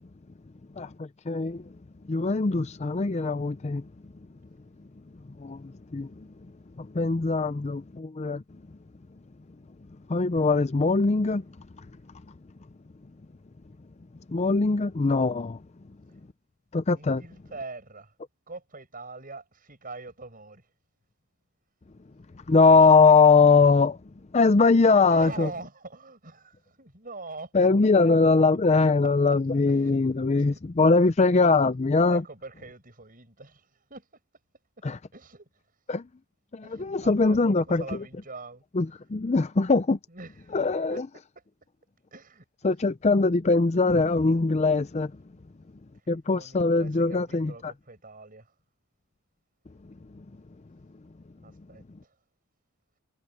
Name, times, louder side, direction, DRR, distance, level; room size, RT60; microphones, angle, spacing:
voice 1, 0.8-1.6 2.1-3.8 5.4-6.1 6.8-8.4 10.1-11.4 14.3-15.6 16.7-17.2 22.5-24.0 24.3-25.5 27.5-32.2 34.8-35.0 35.9-36.0 36.5-37.8 38.8-40.0 40.5-41.0 42.6-45.1 46.1-47.7, left 4 dB, 30° left, 0.5 m, -21 dB
voice 2, 16.9-18.1 18.5-20.6 25.0-27.5 29.0-29.1 29.7-30.0 30.3-30.6 32.0-34.2 35.1-35.5 36.6-38.6 40.1-41.0 42.1-42.4 45.3-45.4 46.4-48.5 51.4-52.1, right 3 dB, 40° right, 6.2 m, -43 dB
head